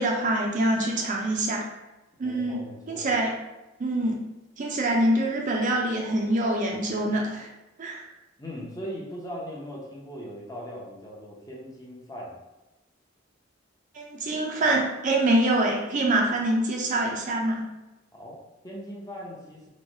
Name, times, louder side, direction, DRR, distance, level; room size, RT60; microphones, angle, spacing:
voice 1, 0.0-1.7 2.2-2.6 2.9-3.3 3.8-4.2 4.6-7.5 7.8-8.0 13.9-17.6, right 1 dB, 40° right, 0 dB, 0.4 m, -25 dB
voice 2, 2.2-3.1 8.4-12.4 18.1-19.7, equal, 20° left, -4 dB, 0.6 m, -39 dB
3.1 x 2.1 x 2.6 m, 1.0 s
head